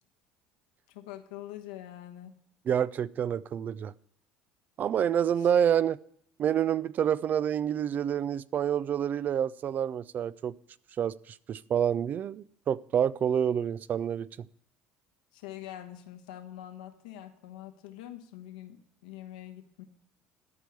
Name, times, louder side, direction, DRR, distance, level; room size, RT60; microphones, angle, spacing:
voice 1, 0.9-2.3 5.4-5.5 15.3-19.8, left 12 dB, 90° left, 1.1 m, -44 dB
voice 2, 2.7-3.9 4.8-6.0 6.4-10.5 11.0-11.1 11.5-14.3, right 9 dB, 45° right, 0.4 m, -28 dB
13.5 x 4.6 x 8.2 m
supercardioid pair, 85°, 4 cm